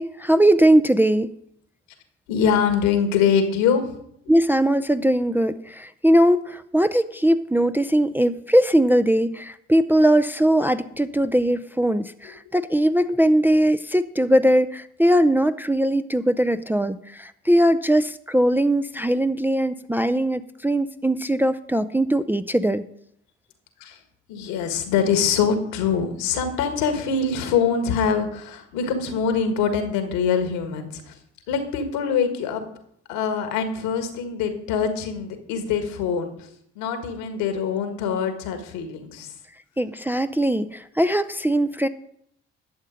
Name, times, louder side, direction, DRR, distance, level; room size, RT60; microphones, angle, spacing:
voice 1, 0.0-1.3 4.3-22.8 39.8-41.9, right 1 dB, 5° right, 10 dB, 0.5 m, -20 dB
voice 2, 2.3-3.9 23.8-24.0 24.3-31.1 31.5-32.6 33.1-36.5 36.7-39.3, left 6 dB, 75° left, 7 dB, 1.6 m, -24 dB
11.5 x 7.4 x 5.0 m, 0.72 s
hypercardioid pair, 50°, 33 cm